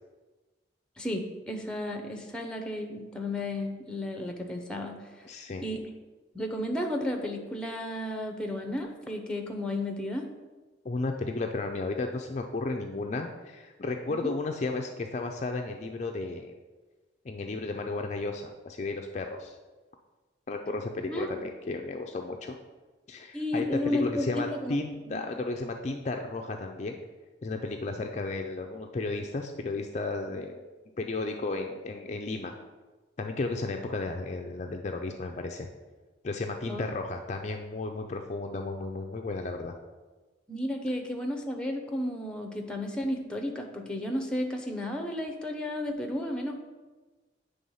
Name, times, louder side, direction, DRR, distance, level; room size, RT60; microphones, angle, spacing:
voice 1, 1.0-5.0 5.6-5.8 6.3-10.2 14.1-14.3 21.1-21.3 23.3-24.8 25.1-25.2 36.7-36.9 40.5-46.5, left 1 dB, 5° left, 4 dB, 0.7 m, -33 dB
voice 2, 5.2-5.6 10.8-16.5 17.2-19.6 20.5-22.6 23.1-27.0 27.4-30.6 31.0-32.5 33.2-35.7 36.2-39.7, left 3 dB, 35° left, 3 dB, 0.4 m, -33 dB
8.8 x 3.5 x 5.5 m, 1.2 s
head